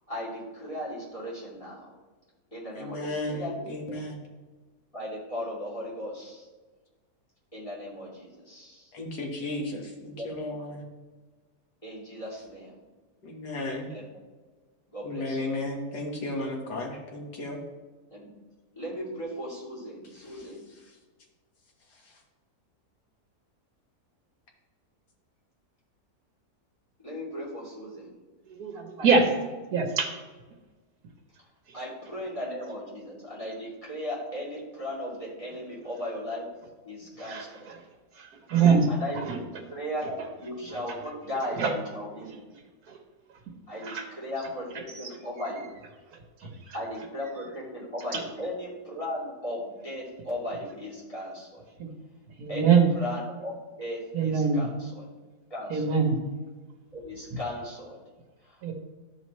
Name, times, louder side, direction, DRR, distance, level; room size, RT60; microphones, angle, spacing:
voice 1, 0.1-1.9 2.5-3.5 3.9-4.0 4.9-6.5 7.5-8.9 9.8-10.3 11.8-12.8 13.9-14.1 14.9-15.4 18.1-18.3 18.7-20.7 27.0-28.2 31.7-36.5 36.8-37.7 38.9-39.3 39.7-42.3 43.7-45.7 46.7-51.6 52.5-55.1 55.5-55.9 56.9-58.0 58.4-58.7, left 1 dB, 20° left, -7 dB, 2.9 m, -37 dB
voice 2, 2.8-4.2 8.9-10.8 13.2-13.9 15.0-17.6 20.2-20.9 21.9-22.2, left 2 dB, 80° left, 0 dB, 1.9 m, -35 dB
voice 3, 28.5-30.1 37.2-37.7 38.2-38.9 39.1-39.4 41.6-41.7 42.9-43.0 43.8-44.1 45.0-45.1 46.4-46.7 48.1-48.2 51.8-51.9 52.4-52.9 54.1-54.7 55.7-56.2 58.6-58.7, right 5 dB, 70° right, 1 dB, 1.5 m, -24 dB
13.0 x 4.9 x 3.1 m, 1.3 s
omnidirectional pair, 1.7 m